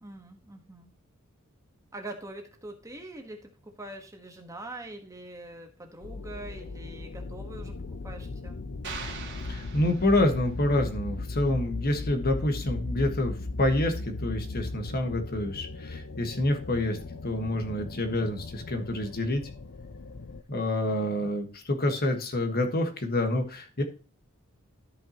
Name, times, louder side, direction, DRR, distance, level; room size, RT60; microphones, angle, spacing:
voice 1, 0.0-0.9 1.9-7.8 8.0-8.6, right 2 dB, 15° right, 4 dB, 1.4 m, -43 dB
sound 1, 6.0-20.4, left 3 dB, 60° left, 0.7 m, -37 dB
sound 2, 8.8-10.6, right 5 dB, 55° right, 2.3 m, -42 dB
voice 2, 9.5-17.0 17.2-19.4 20.5-23.8, left 1 dB, 45° left, 5 dB, 1.5 m, -27 dB
13.0 x 5.7 x 3.0 m, 0.36 s
head